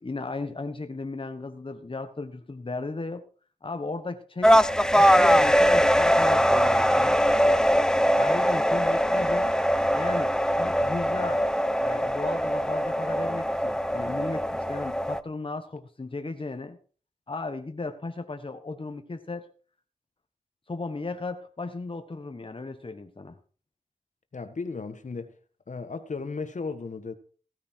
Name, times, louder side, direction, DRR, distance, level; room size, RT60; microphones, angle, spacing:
voice 1, 0.0-3.2 3.6-4.6 4.9-7.2 8.2-9.5 9.9-11.5 11.8-16.8 17.3-19.5 20.7-23.4, left 3 dB, 40° left, 1.4 m, -35 dB
sound 1, 4.4-15.2, equal, 5° left, 0.6 m, -22 dB
voice 2, 24.3-25.3 25.7-27.2, left 4 dB, 65° left, 1.5 m, -35 dB
16.0 x 9.6 x 4.6 m
wide cardioid pair, 65°, 13 cm